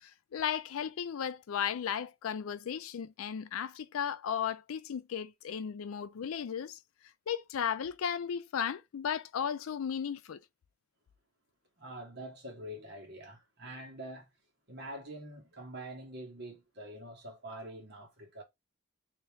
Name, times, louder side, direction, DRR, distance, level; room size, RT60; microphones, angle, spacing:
voice 1, 0.0-6.8 7.3-10.4, left 8 dB, 80° left, 0.4 m, -35 dB
voice 2, 11.8-14.3 14.7-18.4, right 1 dB, 50° right, 1.3 m, -45 dB
2.9 x 2.8 x 3.4 m
head